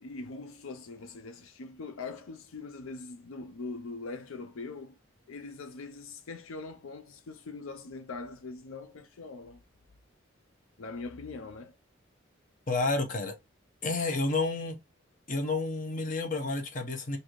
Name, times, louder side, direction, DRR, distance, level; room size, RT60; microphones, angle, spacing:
voice 1, 0.0-5.0 5.3-9.6 10.8-11.7, left 3 dB, 80° left, 0.5 m, -42 dB
voice 2, 12.7-13.4 13.8-14.8 15.3-17.2, left 3 dB, 40° left, 0.8 m, -30 dB
4.0 x 2.7 x 3.0 m
head